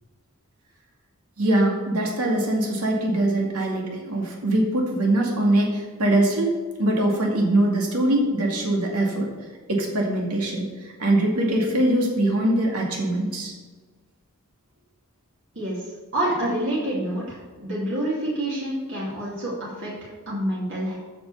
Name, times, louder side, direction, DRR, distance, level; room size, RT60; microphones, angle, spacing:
voice 1, 1.4-6.5 6.8-9.3 9.7-13.5, right 1 dB, 85° right, -1 dB, 2.3 m, -22 dB
voice 2, 16.1-19.9 20.3-20.9, right 1 dB, 55° right, -7 dB, 2.6 m, -27 dB
8.7 x 6.4 x 6.9 m, 1.4 s
head